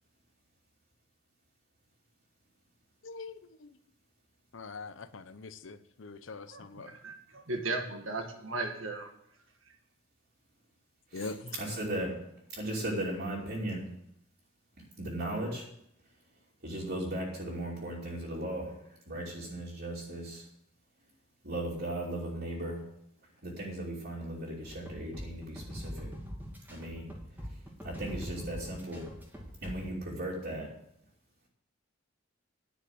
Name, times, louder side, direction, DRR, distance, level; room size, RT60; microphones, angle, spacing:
voice 1, 3.0-3.8 4.5-7.0 11.1-11.6, left 3 dB, 70° left, 12 dB, 0.7 m, -43 dB
voice 2, 6.5-7.1 7.5-9.1, right 3 dB, 85° right, 3 dB, 1.8 m, -36 dB
voice 3, 11.6-12.2 12.5-13.9 15.0-15.7 16.6-20.5 21.4-22.8 23.4-26.1 26.7-27.1 27.8-29.1 29.6-30.7, right 1 dB, 55° right, -6 dB, 3.0 m, -37 dB
sound 1, 24.6-29.9, equal, 10° right, 2.5 m, -43 dB
10.5 x 6.5 x 7.9 m, 0.77 s
head